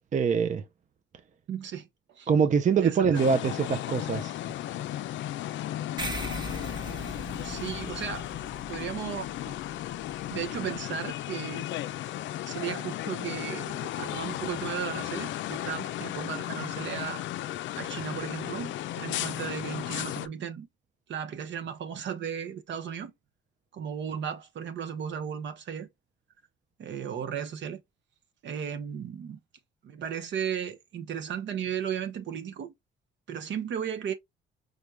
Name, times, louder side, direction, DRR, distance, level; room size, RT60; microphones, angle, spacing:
voice 1, 0.1-0.6 2.3-4.3, right 6 dB, 40° right, 0.5 m, -24 dB
voice 2, 1.5-2.3 2.7-3.2 7.4-8.3 8.7-9.6 10.3-11.7 12.4-17.2 17.8-20.7 21.1-23.1 23.7-25.9 26.8-27.8 28.4-29.4 29.8-32.7 33.3-34.1, right 8 dB, 65° right, 0.9 m, -35 dB
sound 1, 3.1-20.3, left 13 dB, 70° left, 0.4 m, -35 dB
sound 2, 6.0-10.8, right 1 dB, 20° right, 0.9 m, -40 dB
5.1 x 2.2 x 3.1 m
cardioid pair, 90°, 20 cm